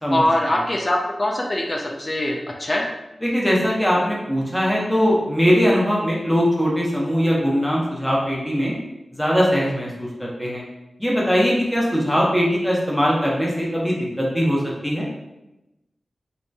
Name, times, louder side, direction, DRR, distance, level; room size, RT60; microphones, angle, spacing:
voice 1, 0.1-2.8, left 1 dB, 30° left, 0 dB, 0.4 m, -22 dB
voice 2, 3.2-8.7 9.1-10.6 11.0-15.1, equal, 5° left, -4 dB, 0.8 m, -21 dB
2.8 x 2.6 x 2.2 m, 0.95 s
wide cardioid pair, 60°, 0 cm